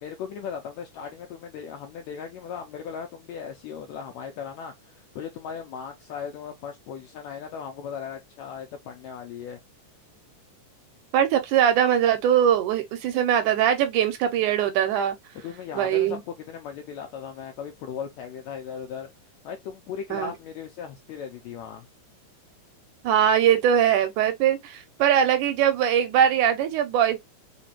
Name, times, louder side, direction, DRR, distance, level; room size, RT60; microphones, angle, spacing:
voice 1, 0.0-9.6 15.4-19.1 19.4-21.9, left 7 dB, 80° left, 1.6 m, -37 dB
voice 2, 11.1-15.2 15.8-16.2 20.1-20.3 23.0-27.2, right 9 dB, 80° right, 2.0 m, -21 dB
5.1 x 2.2 x 2.9 m
omnidirectional pair, 3.8 m